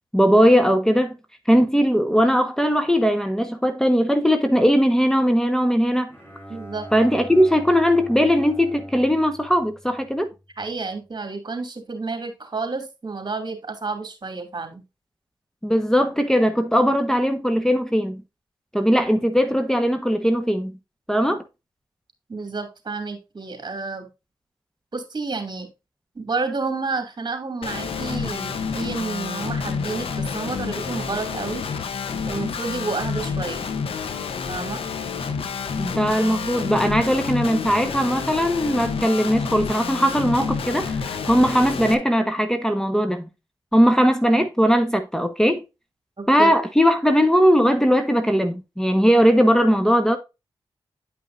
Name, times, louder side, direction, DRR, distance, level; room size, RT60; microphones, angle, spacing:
voice 1, 0.1-1.1 1.5-6.1 6.9-10.3 15.6-18.2 18.7-20.7 21.1-21.4 35.8-43.3 43.7-45.6 46.3-50.2, equal, 5° left, 1.3 m, -19 dB
Bowed string instrument, 6.1-10.4, equal, 20° left, 4.0 m, -41 dB
voice 2, 6.5-6.9 10.6-14.8 22.3-24.1 24.9-25.7 26.1-31.6 32.2-33.7 34.5-34.8 46.2-46.5, right 3 dB, 50° right, 2.6 m, -30 dB
Guitar, 27.6-41.9, left 5 dB, 85° left, 0.9 m, -29 dB
10.0 x 5.5 x 2.6 m
cardioid pair, 45°, 9 cm